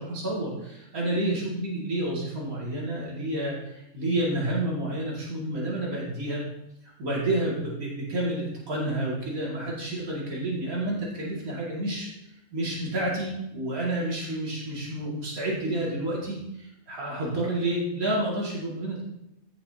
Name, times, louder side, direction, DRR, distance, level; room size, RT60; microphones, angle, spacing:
voice 1, 0.0-6.4 7.0-12.1 12.5-19.0, right 1 dB, 80° right, -5 dB, 2.7 m, -29 dB
15.0 x 6.6 x 2.8 m, 0.83 s
omnidirectional pair, 1.5 m